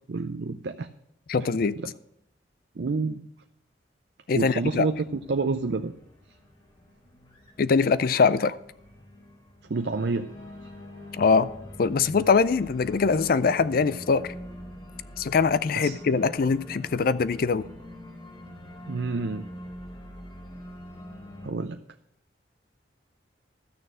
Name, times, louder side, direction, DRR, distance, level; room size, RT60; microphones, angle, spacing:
voice 1, 0.1-0.9 1.4-1.5 1.8-1.9 2.8-3.2 4.3-5.9 9.7-10.3 15.7-16.0 18.9-19.5 21.4-21.8, right 3 dB, 65° right, 8 dB, 0.5 m, -28 dB
voice 2, 1.3-1.8 4.3-4.9 7.6-8.6 11.1-11.5 11.8-14.3 15.2-17.7, left 5 dB, 55° left, 16 dB, 0.4 m, -23 dB
Organ, 4.7-21.5, equal, 30° left, 2.1 m, -45 dB
13.0 x 6.7 x 6.1 m, 0.78 s
head